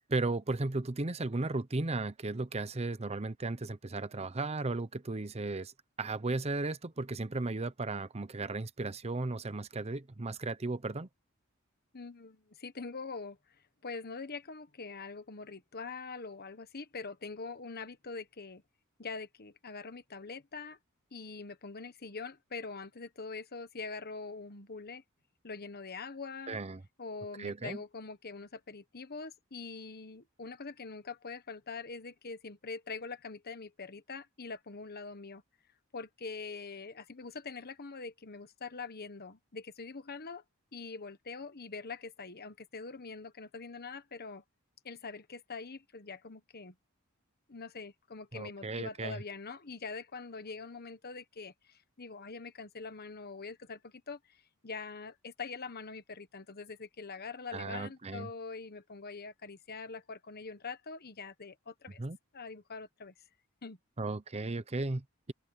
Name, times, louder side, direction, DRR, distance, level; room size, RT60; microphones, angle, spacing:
voice 1, 0.1-5.7 6.0-11.1 26.5-26.8 27.4-27.8 48.3-49.2 57.5-58.3 62.0-62.2 64.0-65.3, right 2 dB, 30° right, 0.8 m, -35 dB
voice 2, 11.9-13.4 13.8-18.6 19.0-20.8 21.1-25.0 25.4-26.6 27.0-35.4 35.9-40.4 40.7-44.4 44.8-46.7 47.5-62.0 62.3-63.1 63.6-63.8, left 4 dB, 45° left, 1.3 m, -44 dB
open air
head